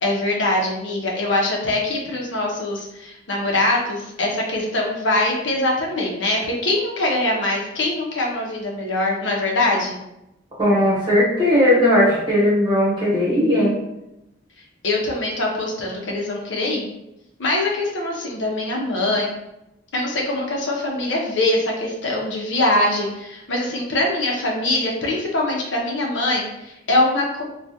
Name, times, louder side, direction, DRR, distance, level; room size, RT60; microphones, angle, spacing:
voice 1, 0.0-9.9 14.8-16.8 17.4-19.3 19.9-27.4, left 2 dB, 80° left, -1 dB, 0.7 m, -23 dB
voice 2, 10.6-13.8, left 1 dB, 25° right, -6 dB, 1.1 m, -17 dB
3.4 x 2.3 x 2.8 m, 0.86 s
head